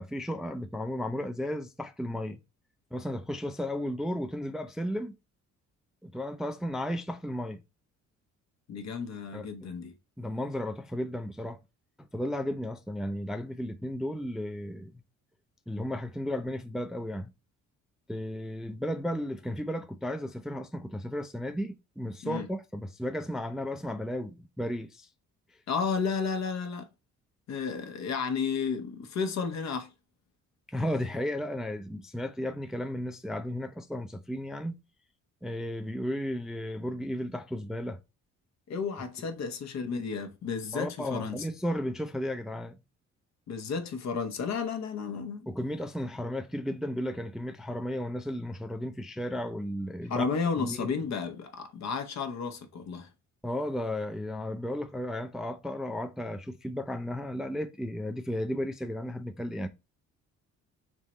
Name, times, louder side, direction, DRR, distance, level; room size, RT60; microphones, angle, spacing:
voice 1, 0.0-2.4 2.9-5.1 6.0-7.6 9.3-9.7 10.2-11.6 12.0-14.9 15.7-17.3 18.1-25.1 30.7-34.8 35.4-38.0 40.7-42.8 45.5-50.2 50.6-50.9 53.4-59.7, left 1 dB, ahead, 0.3 m, -34 dB
voice 2, 8.7-9.9 22.2-22.5 25.7-26.9 27.5-29.9 38.7-41.5 43.5-45.5 50.1-53.1, left 5 dB, 60° left, 0.9 m, -32 dB
3.6 x 3.0 x 4.3 m
cardioid pair, 90°, 30 cm